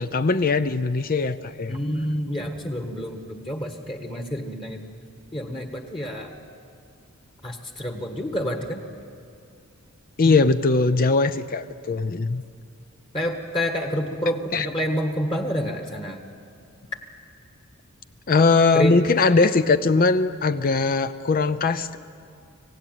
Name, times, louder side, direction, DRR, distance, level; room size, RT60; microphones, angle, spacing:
voice 1, 0.0-1.8 10.2-12.4 14.5-14.7 18.3-22.0, left 3 dB, 40° left, 12 dB, 0.6 m, -20 dB
voice 2, 1.7-4.8 5.3-6.3 7.4-8.8 10.2-10.4 13.1-16.2 18.7-19.0, equal, 25° left, 4 dB, 1.5 m, -28 dB
25.5 x 16.5 x 9.1 m, 2.4 s
head